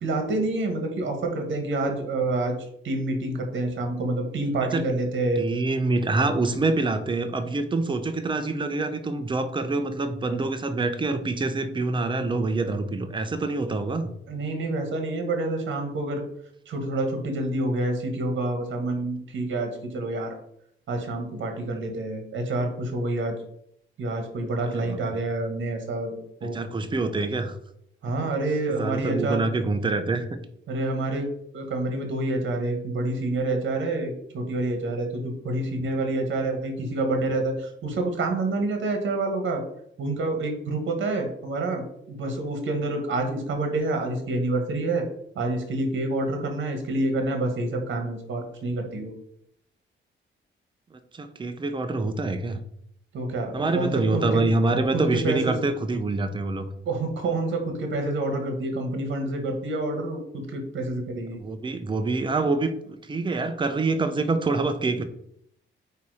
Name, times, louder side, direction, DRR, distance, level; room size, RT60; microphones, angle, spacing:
voice 1, 0.0-2.5 2.8-5.4 14.3-16.2 16.7-20.3 20.9-23.3 24.0-26.6 28.0-29.4 30.7-31.3 31.5-39.6 40.0-45.0 45.3-49.1 53.1-54.4 54.9-55.5 56.8-61.4, right 2 dB, 65° right, 4 dB, 1.5 m, -28 dB
voice 2, 5.4-14.1 24.7-25.0 26.4-27.5 28.7-30.3 51.1-52.6 53.5-56.7 61.4-65.0, right 3 dB, 25° right, 8 dB, 0.6 m, -26 dB
8.4 x 2.9 x 4.9 m, 0.72 s
wide cardioid pair, 165°, 21 cm